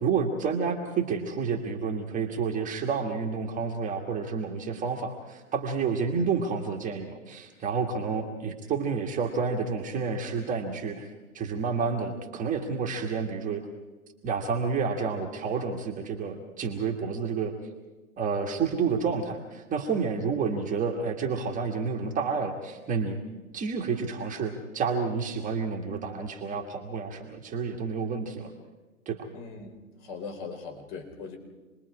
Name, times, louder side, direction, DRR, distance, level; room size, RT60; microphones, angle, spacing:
voice 1, 0.0-11.1 11.3-13.6 14.2-17.5 18.2-23.2 23.5-28.5 29.1-29.3, right 5 dB, 20° right, 1 dB, 1.6 m, -30 dB
voice 2, 29.3-29.8 30.0-31.4, left 5 dB, 40° left, 4 dB, 4.2 m, -39 dB
28.0 x 21.0 x 4.9 m, 1.2 s
hypercardioid pair, 130°, 42 cm